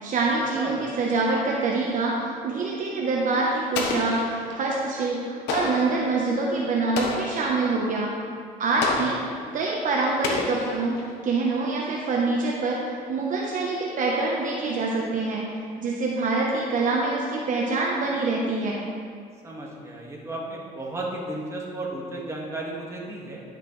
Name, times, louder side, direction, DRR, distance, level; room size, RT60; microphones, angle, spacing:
voice 1, 0.0-8.1 8.6-9.2 9.5-15.5 15.8-18.8, right 3 dB, 50° right, -3 dB, 1.0 m, -25 dB
Explosion, 3.7-4.7 5.5-6.0 7.0-7.5 8.8-9.4 10.2-11.1, left 3 dB, 90° left, 1.1 m, -30 dB
voice 2, 8.8-9.1 19.4-23.4, right 1 dB, 15° right, -3 dB, 1.8 m, -34 dB
10.5 x 6.5 x 3.3 m, 2.2 s
cardioid pair, 110°, 17 cm